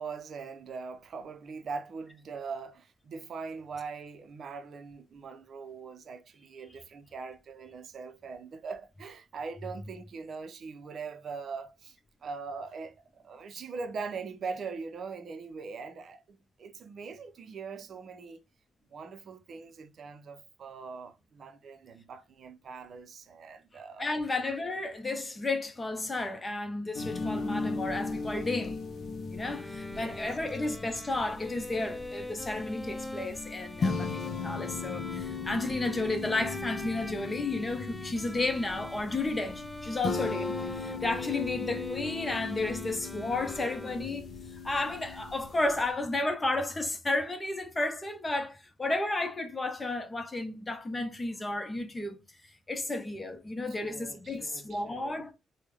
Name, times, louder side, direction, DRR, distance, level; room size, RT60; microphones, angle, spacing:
voice 1, 0.0-12.0 12.2-18.4 18.9-24.1 29.9-30.3 53.7-55.3, right 5 dB, 60° right, 0.5 m, -41 dB
voice 2, 24.0-28.8 29.3-52.2 52.7-55.3, left 2 dB, 25° left, 0.8 m, -32 dB
sound 1, 26.9-45.9, left 4 dB, 55° left, 0.5 m, -37 dB
sound 2, 29.4-44.3, left 1 dB, 5° left, 0.3 m, -43 dB
3.4 x 2.2 x 3.2 m
supercardioid pair, 65°, 0 cm